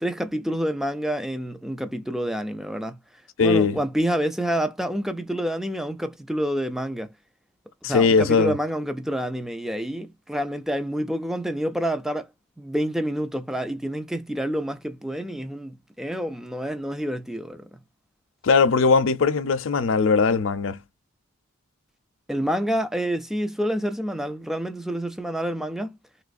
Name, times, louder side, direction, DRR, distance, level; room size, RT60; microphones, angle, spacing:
voice 1, 0.0-3.0 3.4-7.1 7.8-12.3 12.6-17.7 22.3-25.9, equal, ahead, 0.3 m, -28 dB
voice 2, 3.4-3.8 7.8-8.5 18.4-20.8, left 4 dB, 60° left, 0.5 m, -19 dB
3.3 x 3.1 x 2.4 m
head